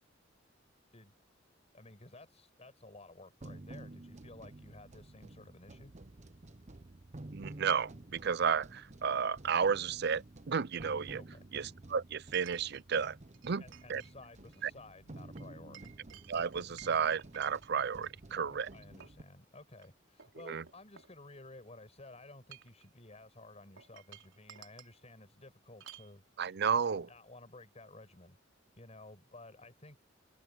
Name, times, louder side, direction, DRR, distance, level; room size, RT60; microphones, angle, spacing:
voice 1, 1.7-5.9 11.2-11.5 13.6-16.0 18.3-26.6 27.0-28.4 28.8-30.0, left 2 dB, 35° left, 6.0 m, -54 dB
sound 1, 3.4-19.2, right 2 dB, 40° right, 0.9 m, -52 dB
voice 2, 7.3-11.2 11.5-13.2 13.4-13.6 13.9-14.0 14.6-14.7 16.3-18.7 20.5-20.6 26.4-27.1, right 6 dB, 60° right, 0.6 m, -32 dB
Chink clink, 8.9-9.0 12.3-12.8 13.3-14.1 14.4-14.7 15.4-18.1 18.7-19.2 19.7-19.9 20.2-21.6 22.3-22.9 23.8-25.0 25.8-26.1, right 10 dB, 75° right, 4.0 m, -55 dB
head